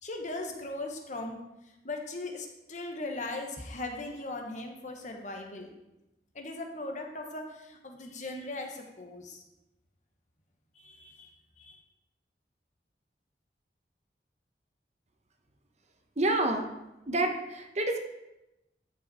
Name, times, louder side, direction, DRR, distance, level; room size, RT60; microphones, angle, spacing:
voice 1, 0.0-1.4 1.8-5.7 6.3-9.4 10.8-11.3 11.6-11.8, left 2 dB, 45° left, 3 dB, 1.3 m, -39 dB
voice 2, 16.2-16.7 17.1-18.0, right 2 dB, 40° right, 4 dB, 1.0 m, -28 dB
12.5 x 5.4 x 4.3 m, 0.94 s
head